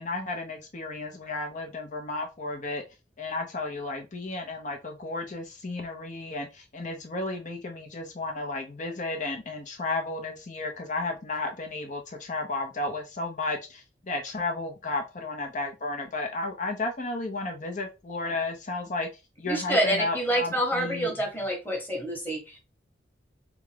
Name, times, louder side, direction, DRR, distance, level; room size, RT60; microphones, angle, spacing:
voice 1, 0.0-2.8 3.2-19.1 19.4-21.1, left 2 dB, 45° left, 0.8 m, -33 dB
voice 2, 19.5-22.6, right 1 dB, 10° left, 1.3 m, -27 dB
3.6 x 3.6 x 3.3 m
head